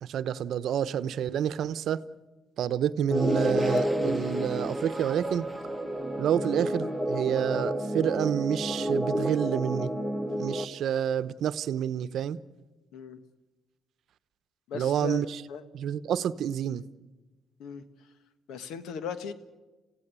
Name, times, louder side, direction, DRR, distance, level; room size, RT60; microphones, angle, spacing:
voice 1, 0.0-2.0 2.6-5.4 6.2-9.9 10.4-12.4 14.7-15.4 15.7-16.8, right 9 dB, 70° right, 0.8 m, -29 dB
sound 1, 3.1-10.6, right 1 dB, 5° right, 1.5 m, -30 dB
voice 2, 14.7-15.2 15.5-15.6 17.6-17.8 18.5-19.3, left 6 dB, 85° left, 1.5 m, -37 dB
28.5 x 16.0 x 8.3 m
cardioid pair, 90°, 0 cm